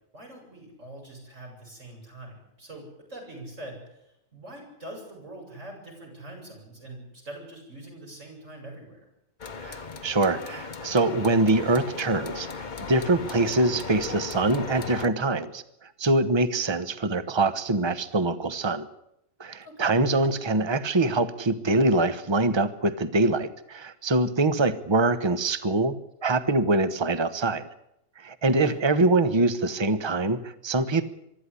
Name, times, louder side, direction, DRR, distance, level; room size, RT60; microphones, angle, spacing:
voice 1, 0.1-9.1 19.6-20.0 28.5-28.8, right 1 dB, 55° right, 0 dB, 8.0 m, -44 dB
sound 1, 9.4-15.1, left 5 dB, 35° left, 1.0 m, -37 dB
voice 2, 9.6-15.6 16.0-18.9 19.4-27.7 28.2-31.0, right 2 dB, 20° right, 13 dB, 1.0 m, -24 dB
24.0 x 13.0 x 9.8 m, 0.83 s
omnidirectional pair, 1.6 m